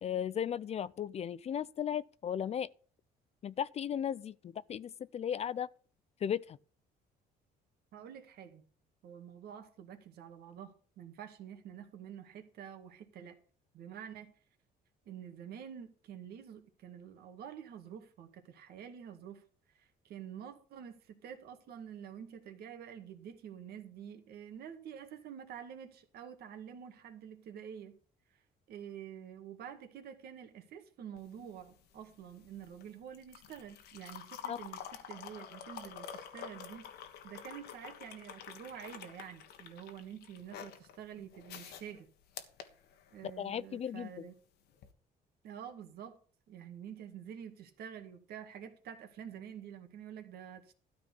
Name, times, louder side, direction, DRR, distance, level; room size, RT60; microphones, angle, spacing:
voice 1, 0.0-2.7 3.4-5.7 6.2-6.6 34.5-34.6 43.4-44.3, left 9 dB, 40° left, 0.4 m, -36 dB
voice 2, 7.9-8.6 9.0-13.4 13.7-14.3 15.1-19.4 19.8-28.0 28.3-28.4 28.7-36.9 37.2-42.1 43.1-44.3 45.4-46.2 46.5-50.7, right 8 dB, 70° right, 1.9 m, -48 dB
sound 1, 31.2-43.5 44.7-44.9, left 8 dB, 75° left, 1.5 m, -49 dB
13.0 x 4.3 x 8.3 m
cardioid pair, 110°, 17 cm